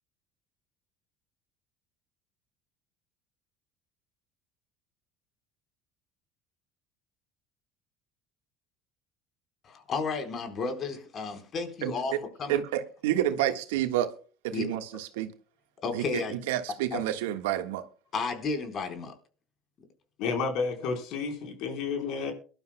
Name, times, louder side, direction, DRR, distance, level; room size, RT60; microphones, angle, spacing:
voice 1, 9.6-12.1 12.4-12.6 14.5-14.7 15.8-16.4 16.9-17.0 18.1-19.1, left 4 dB, 45° left, 6 dB, 4.2 m, -32 dB
voice 2, 11.8-12.2 12.5-14.1 14.4-15.3 15.9-17.8, right 12 dB, 80° right, 8 dB, 1.5 m, -29 dB
voice 3, 20.2-22.3, left 5 dB, 65° left, 4 dB, 4.1 m, -31 dB
23.0 x 12.0 x 2.2 m, 0.39 s
hypercardioid pair, 80°, 0 cm